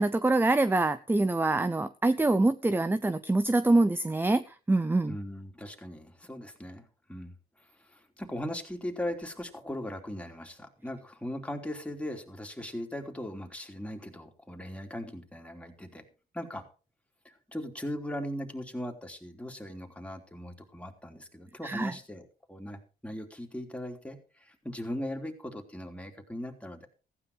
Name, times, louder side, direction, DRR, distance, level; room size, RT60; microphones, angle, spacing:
voice 1, 0.0-5.1 21.6-21.9, right 2 dB, 10° right, 14 dB, 0.7 m, -25 dB
voice 2, 5.1-6.8 7.1-7.3 7.8-16.0 16.3-16.6 17.2-26.9, left 1 dB, 5° left, 3 dB, 3.3 m, -39 dB
15.5 x 9.8 x 4.9 m, 0.36 s
cardioid pair, 90°, 20 cm